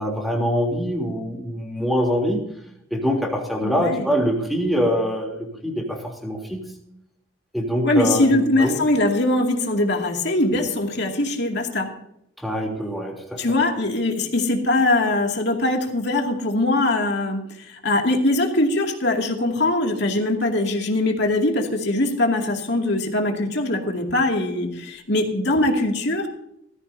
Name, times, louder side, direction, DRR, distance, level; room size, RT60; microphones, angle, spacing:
voice 1, 0.0-2.4 2.9-6.6 7.5-8.8 12.4-13.6, equal, ahead, -1 dB, 3.2 m, -24 dB
voice 2, 3.6-4.1 7.8-11.9 13.4-26.3, left 2 dB, 55° left, 2 dB, 2.4 m, -22 dB
18.5 x 14.5 x 2.8 m, 0.76 s
head